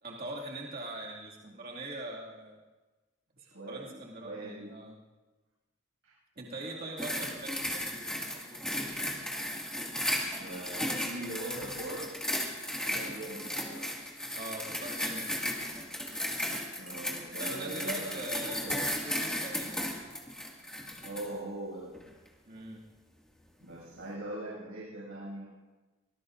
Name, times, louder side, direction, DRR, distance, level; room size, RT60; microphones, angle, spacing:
voice 1, 0.0-2.6 3.7-5.0 6.4-8.7 14.3-15.3 17.4-19.9 22.5-22.8, right 1 dB, 45° right, -4 dB, 2.3 m, -42 dB
voice 2, 3.4-4.7 6.0-6.1 6.5-7.3 10.3-12.1 12.9-13.9 16.8-18.8 21.0-22.0 23.6-25.4, right 1 dB, 70° right, -9 dB, 6.5 m, -42 dB
sound 1, 7.0-21.3 21.9-22.1, left 1 dB, 5° left, 2.1 m, -35 dB
24.5 x 20.0 x 2.6 m, 1.2 s
head